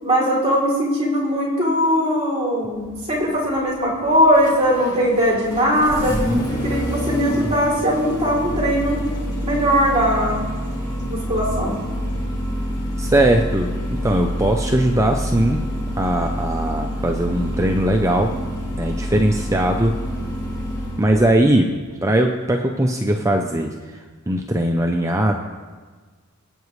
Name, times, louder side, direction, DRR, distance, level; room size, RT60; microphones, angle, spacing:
voice 1, 0.0-6.1 6.5-9.0 9.4-10.4 11.1-11.7, equal, 30° right, -4 dB, 3.3 m, -20 dB
Engine starting, 2.7-21.1, equal, 20° left, 2.2 m, -27 dB
voice 2, 13.0-15.6 16.0-18.3 18.8-19.9 21.0-21.7 22.0-23.7 24.3-25.3, right 1 dB, 15° right, 3 dB, 0.6 m, -19 dB
23.0 x 8.3 x 3.2 m, 1.5 s
head